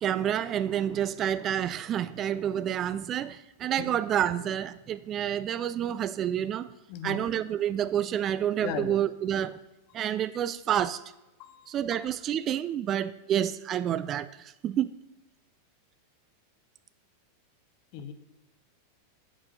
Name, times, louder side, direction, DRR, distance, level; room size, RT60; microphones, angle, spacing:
voice 1, 0.0-6.7 7.0-9.6 9.9-11.0 11.7-14.9, right 10 dB, 30° right, 0.3 m, -29 dB
voice 2, 6.9-7.2 8.6-9.0 9.9-10.0 10.7-10.8 11.4-11.8 17.9-18.1, left 8 dB, 45° left, 0.8 m, -37 dB
7.3 x 4.9 x 6.5 m
figure-of-eight pair, 90°, 0 cm